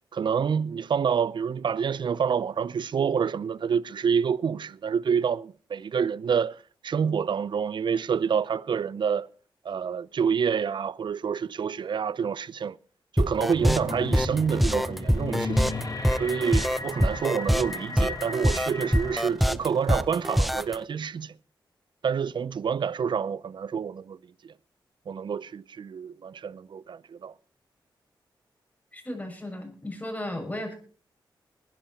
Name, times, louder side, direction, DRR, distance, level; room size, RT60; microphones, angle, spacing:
voice 1, 0.1-6.6 6.8-9.3 9.6-12.8 13.1-15.8 16.2-21.3 22.0-24.2 24.4-24.5 25.1-27.3, right 7 dB, 60° right, 0.6 m, -28 dB
sound 1, 13.2-20.7, equal, ahead, 0.7 m, -24 dB
sound 2, 13.6-19.3, left 3 dB, 40° left, 4.8 m, -36 dB
voice 2, 28.9-30.7, left 1 dB, 15° left, 6.7 m, -35 dB
20.5 x 11.5 x 4.3 m
cardioid pair, 65°, 9 cm